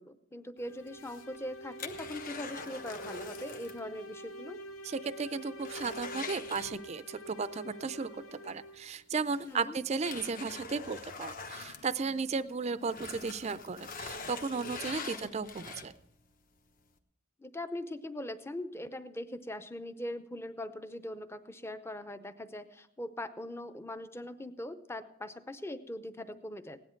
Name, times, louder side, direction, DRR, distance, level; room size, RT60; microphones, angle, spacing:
voice 1, 0.0-4.6 9.4-9.8 15.2-15.3 17.4-26.8, left 1 dB, 10° left, 10 dB, 0.6 m, -41 dB
sound 1, 0.6-9.0, right 1 dB, 80° left, 0.9 m, -47 dB
sound 2, 0.9-3.9 4.1-4.2 4.7-4.8 5.2-7.2 8.6-8.7 9.4-12.5 12.8-16.1 16.7-16.8, left 4 dB, 45° left, 1.0 m, -44 dB
voice 2, 4.8-15.9, right 4 dB, 30° right, 14 dB, 0.4 m, -35 dB
17.0 x 10.5 x 4.5 m, 0.77 s
head